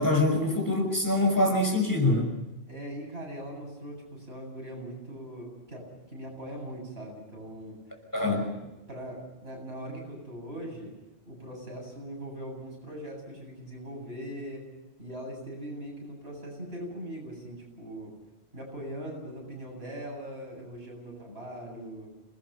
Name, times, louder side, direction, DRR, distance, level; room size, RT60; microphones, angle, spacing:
voice 1, 0.0-2.3 8.1-8.4, left 2 dB, 20° left, 2 dB, 5.7 m, -24 dB
voice 2, 2.7-7.8 8.2-8.4 8.9-10.9 11.3-14.6 15.0-18.1 18.5-22.1, equal, 85° right, 0 dB, 8.5 m, -40 dB
28.0 x 20.0 x 5.8 m, 1.0 s
omnidirectional pair, 1.0 m